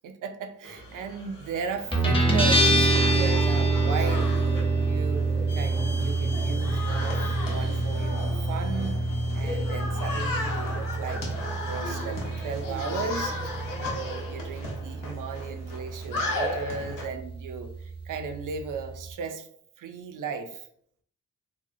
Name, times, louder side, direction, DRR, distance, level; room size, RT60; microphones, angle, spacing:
voice 1, 0.0-11.2 11.6-19.5 19.8-20.7, right 5 dB, 75° right, 7 dB, 0.5 m, -36 dB
sound 1, 0.6-17.1, left 2 dB, 85° left, 0.8 m, -36 dB
Guitar, 1.9-19.1, right 2 dB, 15° left, 0.8 m, -27 dB
sound 2, 5.5-13.9, left 2 dB, 55° left, 0.6 m, -35 dB
2.8 x 2.3 x 2.6 m, 0.65 s
cardioid pair, 75°, 32 cm